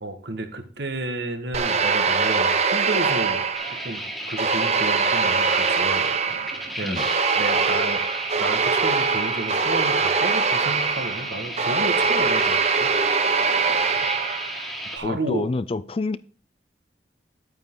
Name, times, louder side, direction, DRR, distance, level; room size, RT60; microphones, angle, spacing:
voice 1, 0.0-3.4 3.8-6.1 6.8-7.1 7.4-8.0 8.4-12.9 14.9-15.5, right 2 dB, 75° right, 1.6 m, -31 dB
sound 1, 1.5-4.0 4.4-14.7, right 5 dB, 40° right, 0.7 m, -23 dB
sound 2, 3.5-15.0, right 1 dB, ahead, 1.8 m, -34 dB
voice 2, 15.0-16.2, left 3 dB, 30° left, 0.4 m, -27 dB
10.5 x 8.8 x 3.8 m
head